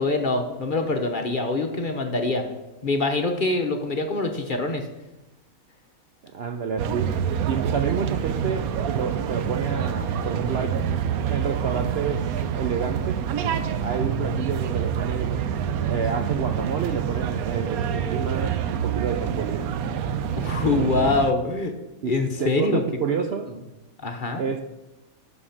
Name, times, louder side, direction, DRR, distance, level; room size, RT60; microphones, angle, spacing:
voice 1, 0.0-2.4 2.8-4.9 20.4-21.7 22.0-22.8 23.2-23.3 24.0-24.4, left 3 dB, 40° left, 4 dB, 1.0 m, -24 dB
voice 2, 6.3-7.2 7.5-10.8 11.3-13.2 13.8-15.4 15.9-19.7 22.0-22.1 22.4-23.5 24.4-24.6, right 6 dB, 60° right, 5 dB, 0.7 m, -29 dB
sound 1, 6.8-21.3, right 8 dB, 80° right, 1.1 m, -27 dB
11.0 x 4.2 x 7.2 m, 1.0 s
omnidirectional pair, 1.5 m